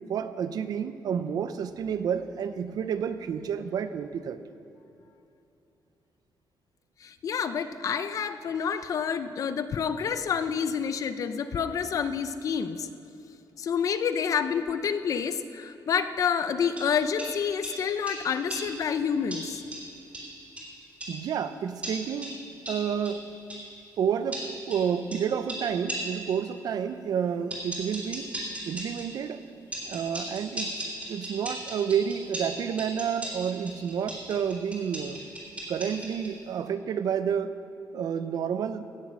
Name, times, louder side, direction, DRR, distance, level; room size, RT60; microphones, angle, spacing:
voice 1, 0.1-4.4 21.1-22.4 22.7-23.3 24.0-28.4 28.6-29.4 29.8-35.2 35.7-37.5 37.9-38.9, right 7 dB, 60° right, 11 dB, 0.6 m, -30 dB
voice 2, 7.0-12.9 13.6-19.6, left 7 dB, 50° left, 11 dB, 0.6 m, -28 dB
sound 1, 16.8-18.9 19.3-21.3 21.8-23.7 24.3-26.3 27.5-29.2 29.7-36.4, right 1 dB, 20° right, 3.0 m, -38 dB
16.5 x 7.4 x 6.2 m, 2.8 s
wide cardioid pair, 165°, 7 cm